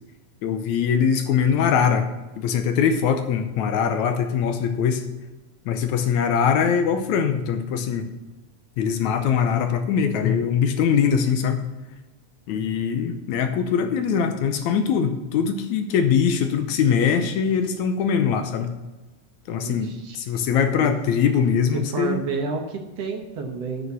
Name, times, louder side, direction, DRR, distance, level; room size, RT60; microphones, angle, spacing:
voice 1, 0.4-5.0 5.7-8.1 8.8-11.6 12.5-18.7 19.5-22.2, left 7 dB, 75° left, 7 dB, 2.0 m, -22 dB
voice 2, 19.6-20.2 20.6-21.0 21.7-23.9, right 4 dB, 65° right, 4 dB, 1.9 m, -30 dB
9.4 x 6.5 x 6.9 m, 1.1 s
omnidirectional pair, 3.6 m